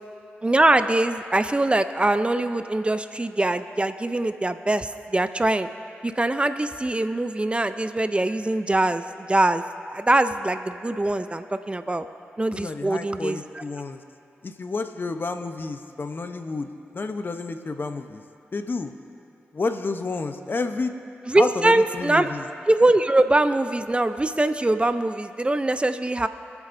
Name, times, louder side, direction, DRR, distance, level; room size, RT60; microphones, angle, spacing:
voice 1, 0.4-5.7 6.0-9.6 9.9-12.1 12.4-13.6 21.3-22.3 22.7-26.3, right 2 dB, 25° right, 10 dB, 0.5 m, -22 dB
voice 2, 12.5-14.0 14.4-18.2 18.5-18.9 19.5-20.9 21.4-22.5, left 3 dB, 50° left, 7 dB, 0.8 m, -30 dB
23.5 x 8.3 x 2.6 m, 2.6 s
cardioid pair, 45°, 5 cm